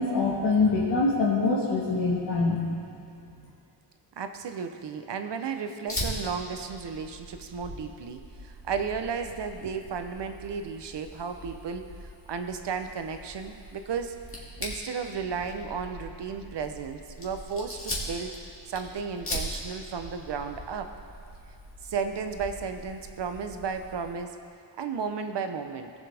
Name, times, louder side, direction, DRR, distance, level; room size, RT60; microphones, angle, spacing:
voice 1, 0.0-2.6, left 3 dB, 80° left, -5 dB, 1.4 m, -24 dB
voice 2, 4.2-14.1 14.6-18.4 18.7-20.9 21.8-24.3 24.8-25.9, right 6 dB, 70° right, 7 dB, 0.8 m, -34 dB
Fire, 5.9-24.1, equal, 30° left, 1.8 m, -40 dB
17.5 x 7.5 x 3.4 m, 2.6 s
wide cardioid pair, 135°, 43 cm